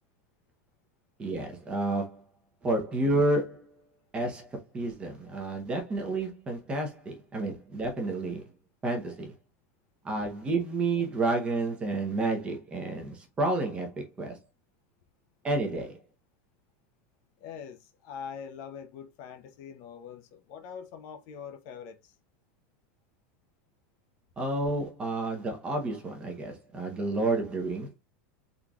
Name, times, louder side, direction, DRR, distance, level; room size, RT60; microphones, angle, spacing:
voice 1, 1.2-2.2 2.6-3.7 4.1-4.5 4.7-8.4 8.8-9.3 10.0-14.4 15.4-16.0 24.4-27.9, right 2 dB, 15° right, 0.8 m, -30 dB
voice 2, 17.4-22.2, left 7 dB, 40° left, 0.6 m, -43 dB
3.8 x 3.0 x 2.3 m
supercardioid pair, 175°, 8 cm